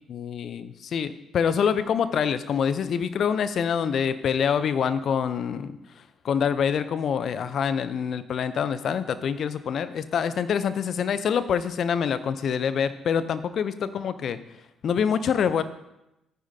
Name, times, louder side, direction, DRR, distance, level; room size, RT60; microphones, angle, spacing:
voice 1, 0.1-14.4 14.8-15.6, left 7 dB, 55° left, 13 dB, 0.7 m, -26 dB
14.0 x 9.6 x 2.8 m, 0.90 s
hypercardioid pair, 50°, 0 cm